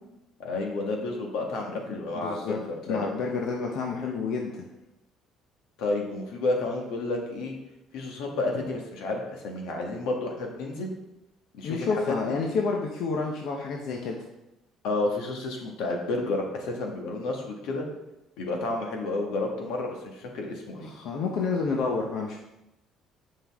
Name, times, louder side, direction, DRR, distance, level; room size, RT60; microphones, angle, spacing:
voice 1, 0.4-3.1 5.8-7.5 7.9-10.9 11.5-12.4 14.8-17.9 18.4-20.9, left 2 dB, 85° left, 1 dB, 1.5 m, -31 dB
voice 2, 1.9-2.6 2.9-4.7 11.6-14.2 20.8-22.4, left 4 dB, 65° left, 0 dB, 0.9 m, -29 dB
9.4 x 5.4 x 3.6 m, 0.92 s
cardioid pair, 135°, 0 cm